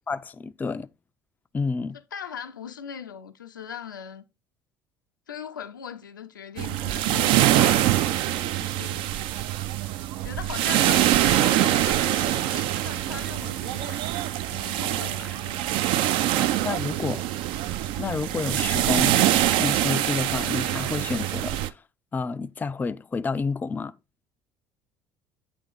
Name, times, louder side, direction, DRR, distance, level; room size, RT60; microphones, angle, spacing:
voice 1, 0.1-0.9 1.5-2.0 16.4-17.2 18.0-19.2 19.5-21.6 22.1-24.0, left 4 dB, 15° left, 0.3 m, -29 dB
voice 2, 2.1-4.2 5.3-9.1 10.2-14.0 14.5-15.7 16.1-16.2, left 8 dB, 90° left, 0.5 m, -39 dB
sound 1, 6.6-21.7, right 13 dB, 55° right, 0.4 m, -24 dB
8.4 x 3.0 x 3.8 m
hypercardioid pair, 65°, 10 cm